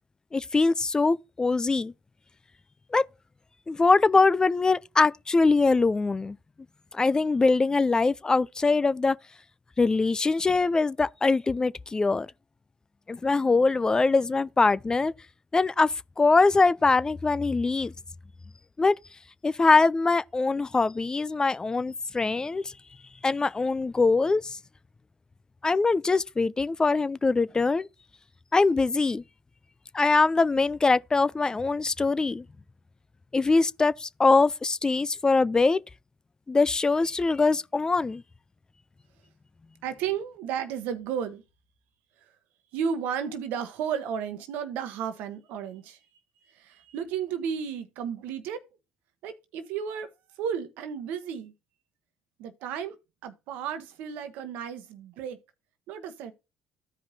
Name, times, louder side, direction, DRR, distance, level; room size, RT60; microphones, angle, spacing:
voice 1, 0.3-1.9 2.9-3.1 3.7-6.4 6.9-9.2 9.8-12.3 13.1-15.1 15.5-17.9 18.8-18.9 19.4-22.7 23.2-24.6 25.6-27.9 28.5-29.2 29.9-32.4 33.3-35.8 36.5-38.2, left 3 dB, 25° left, 0.4 m, -23 dB
voice 2, 39.8-41.4 42.7-46.0 46.5-48.6 49.2-50.1 50.4-51.5 52.4-53.0 53.2-55.4 55.9-56.3, right 7 dB, 70° right, 1.0 m, -33 dB
14.5 x 5.1 x 2.7 m
hypercardioid pair, 55°, 3 cm